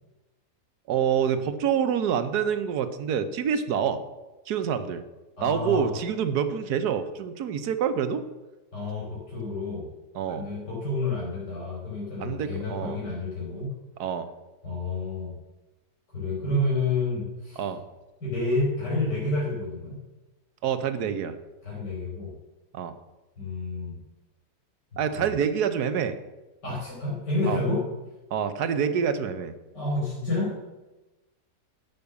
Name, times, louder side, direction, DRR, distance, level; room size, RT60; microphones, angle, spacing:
voice 1, 0.9-4.0 4.5-5.0 5.4-8.2 10.1-10.5 12.2-13.0 14.0-14.3 17.6-17.8 20.6-21.4 22.7-22.9 25.0-26.2 27.5-27.6 28.3-29.5, right 7 dB, 75° right, 11 dB, 1.3 m, -26 dB
voice 2, 5.4-5.9 8.7-9.9 10.3-13.7 14.6-15.3 16.1-17.7 18.2-20.0 21.6-22.3 23.4-24.0 24.9-25.3 26.6-27.9 29.7-30.6, left 2 dB, 85° left, -5 dB, 4.1 m, -29 dB
12.0 x 5.6 x 7.0 m, 1.1 s
omnidirectional pair, 1.8 m